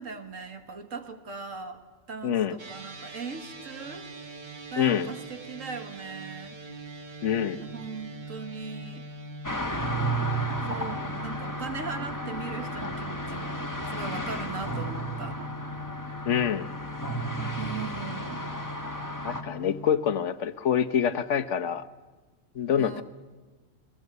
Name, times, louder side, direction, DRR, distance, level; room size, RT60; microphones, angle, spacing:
voice 1, 0.0-1.8 2.1-4.1 4.7-6.6 7.6-9.1 10.7-15.4 17.6-18.5 22.8-23.0, right 5 dB, 80° right, 7 dB, 2.1 m, -39 dB
voice 2, 2.2-2.6 4.8-5.1 7.2-7.6 16.3-16.7 19.2-21.8 22.5-23.0, left 8 dB, 70° left, 11 dB, 1.3 m, -26 dB
sound 1, 2.6-20.1, left 1 dB, 40° right, 1.3 m, -41 dB
sound 2, 9.4-19.4, right 1 dB, 15° left, 1.9 m, -33 dB
29.5 x 20.5 x 8.1 m, 1.3 s
omnidirectional pair, 1.3 m